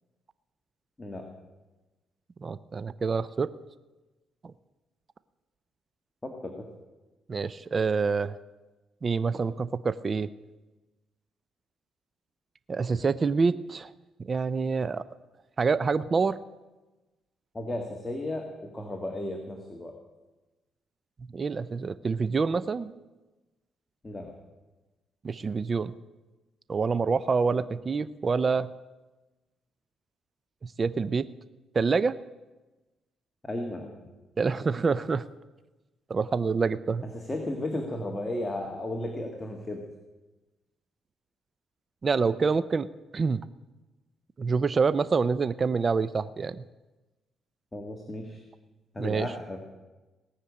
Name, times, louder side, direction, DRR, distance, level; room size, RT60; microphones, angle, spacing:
voice 1, 2.4-3.5 7.3-8.4 9.0-10.3 12.7-13.9 14.2-15.0 15.6-16.4 21.3-22.9 25.2-25.9 26.7-28.7 30.6-31.3 31.7-32.1 34.4-35.3 36.1-37.0 42.0-43.4 44.4-46.6 49.0-49.3, right 4 dB, 35° right, 16 dB, 0.5 m, -27 dB
voice 2, 6.2-6.7 17.5-20.0 24.0-24.3 33.4-33.9 37.0-39.8 47.7-48.4 48.9-49.6, left 1 dB, 20° left, 3 dB, 1.8 m, -34 dB
18.5 x 6.6 x 8.5 m, 1.1 s
cardioid pair, 90°, 0 cm